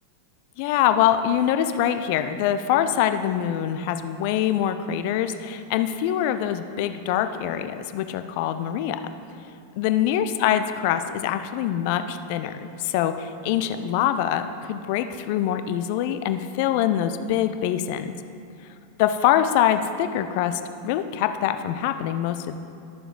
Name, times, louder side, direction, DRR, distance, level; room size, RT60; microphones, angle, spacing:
voice 1, 0.6-9.0 9.8-18.1 19.0-22.6, left 10 dB, 45° left, 10 dB, 0.5 m, -24 dB
12.0 x 6.9 x 3.7 m, 2.6 s
figure-of-eight pair, 90°, 0 cm